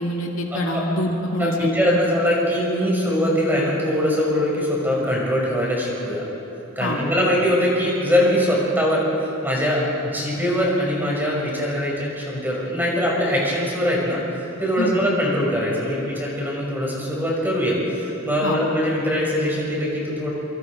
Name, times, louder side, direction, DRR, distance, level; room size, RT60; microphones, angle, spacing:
voice 1, 0.0-2.0 6.8-7.0 14.8-15.0 18.4-18.6, left 1 dB, 65° left, 0 dB, 2.4 m, -25 dB
voice 2, 1.4-6.2 6.8-9.0 9.4-14.2 14.6-20.3, equal, 10° right, -4 dB, 6.2 m, -22 dB
27.5 x 25.0 x 5.0 m, 3.0 s
head